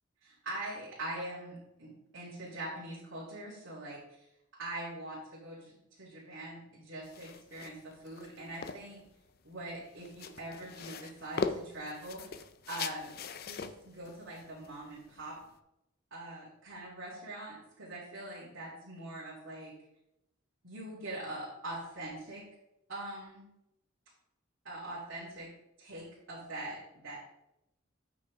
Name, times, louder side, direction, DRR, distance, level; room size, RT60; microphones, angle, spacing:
voice 1, 0.2-4.0 4.6-5.7 6.0-9.0 9.4-12.2 12.7-15.4 16.1-19.7 20.6-22.4 22.9-23.4 24.6-25.5 25.8-27.1, right 1 dB, 70° right, -10 dB, 3.1 m, -43 dB
sound 1, 7.0-15.6, left 5 dB, 50° left, 0.5 m, -41 dB
9.1 x 6.1 x 3.6 m, 0.88 s
head